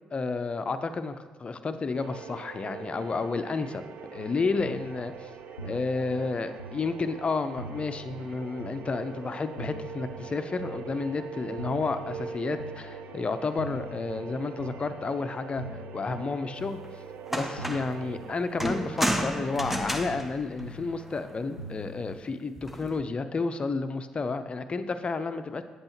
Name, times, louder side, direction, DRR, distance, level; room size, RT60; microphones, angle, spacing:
voice 1, 0.1-3.8 4.1-5.3 5.6-16.8 17.3-25.6, left 4 dB, 35° left, 10 dB, 0.6 m, -31 dB
sound 1, 1.9-19.6, right 7 dB, 60° right, 0.5 m, -43 dB
sound 2, 4.2-22.2, equal, 90° left, 0.4 m, -45 dB
sound 3, 16.8-16.9 17.3-18.0 18.6-21.3 22.6-23.0, equal, 5° right, 0.7 m, -32 dB
8.3 x 7.5 x 3.0 m, 1.3 s
figure-of-eight pair, 45°, 3 cm